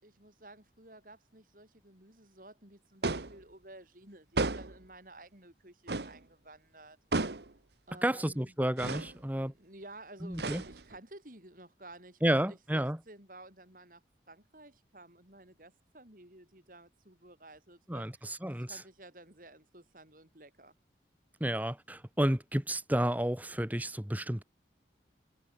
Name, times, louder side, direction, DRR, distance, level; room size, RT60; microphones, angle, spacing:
voice 1, 0.0-7.0 7.9-8.5 9.3-12.2 12.5-20.7, right 2 dB, 50° right, 6.5 m, -53 dB
sound 1, 3.0-3.4 4.4-4.8 5.9-6.2 7.1-7.5 8.8-9.1 10.3-11.0, right 3 dB, 70° right, 1.4 m, -33 dB
voice 2, 8.0-9.5 10.2-10.6 12.2-13.0 17.9-18.7 21.4-24.4, right 1 dB, 10° right, 1.4 m, -31 dB
head